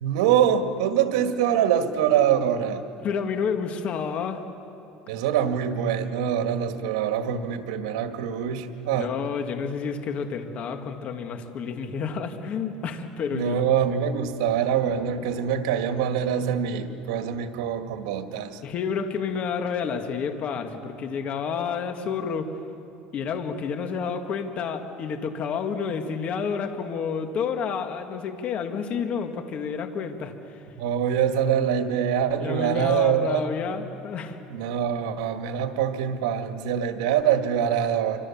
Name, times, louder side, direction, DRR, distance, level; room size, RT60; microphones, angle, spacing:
voice 1, 0.0-2.8 5.1-9.1 13.3-18.6 30.8-33.5 34.5-38.2, right 9 dB, 85° right, 6 dB, 2.0 m, -24 dB
voice 2, 3.0-4.4 8.9-13.6 18.6-22.5 23.1-30.6 32.4-34.4, left 6 dB, 45° left, 6 dB, 2.0 m, -30 dB
26.5 x 25.5 x 7.3 m, 2.9 s
supercardioid pair, 120°, 3 cm